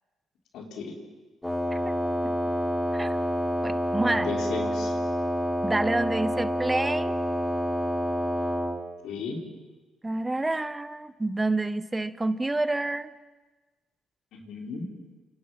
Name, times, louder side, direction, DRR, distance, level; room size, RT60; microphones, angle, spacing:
voice 1, 0.5-0.9 4.1-4.9 9.0-9.4 14.3-14.8, left 4 dB, 85° left, 1 dB, 4.8 m, -35 dB
Wind instrument woodwind instrument, 1.4-8.8, equal, 10° left, 3.7 m, -28 dB
voice 2, 3.6-4.3 5.6-7.1 10.0-13.1, right 2 dB, 15° right, 13 dB, 0.9 m, -28 dB
29.0 x 27.0 x 6.0 m, 1.3 s
cardioid pair, 90°, 0 cm